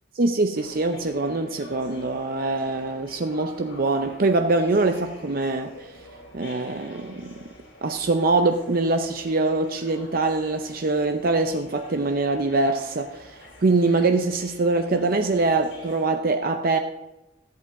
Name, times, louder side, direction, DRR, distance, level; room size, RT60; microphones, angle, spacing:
voice 1, 0.2-5.7 6.3-7.3 7.8-16.8, right 3 dB, 50° right, 6 dB, 0.6 m, -23 dB
sound 1, 0.5-16.1, equal, 70° left, 3.3 m, -46 dB
14.0 x 8.2 x 3.7 m, 0.94 s
head